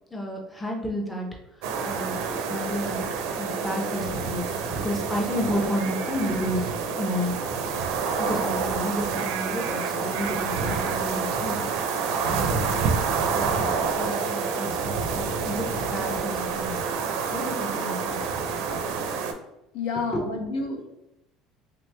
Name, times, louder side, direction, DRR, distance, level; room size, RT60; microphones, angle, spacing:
voice 1, 0.1-1.3 1.6-2.1 2.5-3.1 3.3-4.4 4.8-7.4 8.2-12.8 13.2-16.8 17.3-18.2 20.1-20.2, left 1 dB, 5° left, -1 dB, 0.5 m, -31 dB
sound 1, 1.6-19.3, right 5 dB, 80° right, 0.5 m, -28 dB
voice 2, 19.7-20.9, left 4 dB, 80° left, 3 dB, 0.7 m, -29 dB
3.1 x 3.0 x 3.2 m, 0.89 s
cardioid pair, 165°, 0 cm